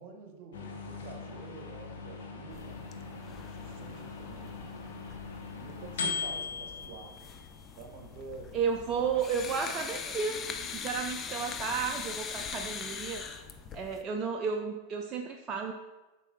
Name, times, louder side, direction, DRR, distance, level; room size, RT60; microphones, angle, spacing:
voice 1, 0.0-2.8 3.4-4.5 5.5-7.2 7.8-8.6 8.9-9.0 11.3-11.4, right 4 dB, 50° right, 5 dB, 1.0 m, -48 dB
sound 1, 0.5-9.4, left 5 dB, 60° left, 1.0 m, -41 dB
sound 2, 2.5-14.0, left 6 dB, 25° left, 0.5 m, -42 dB
voice 2, 8.5-10.4 10.6-13.2 13.7-15.7, right 6 dB, 30° right, 3 dB, 0.4 m, -32 dB
8.1 x 5.4 x 2.6 m, 1.1 s
figure-of-eight pair, 90°, 0 cm